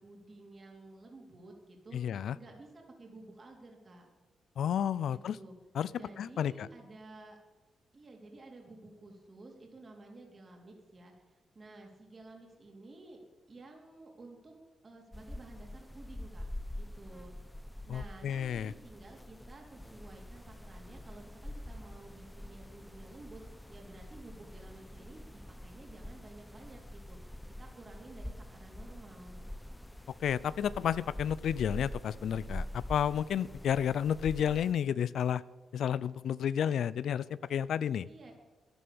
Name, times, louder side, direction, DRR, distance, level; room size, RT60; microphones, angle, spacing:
voice 1, 0.0-4.1 5.1-5.5 5.9-7.4 7.9-14.5 14.8-16.4 16.8-17.3 17.9-29.4 38.1-38.3, right 2 dB, 40° right, 0 dB, 3.8 m, -53 dB
voice 2, 1.9-2.4 4.6-5.4 5.7-5.9 6.2-6.7 17.9-18.7 30.2-35.4 35.7-38.1, left 9 dB, 75° left, 18 dB, 0.4 m, -31 dB
sound 1, 15.1-34.7, left 1 dB, 5° left, 0.9 m, -45 dB
12.5 x 11.0 x 8.7 m, 1.2 s
cardioid pair, 70°, 0 cm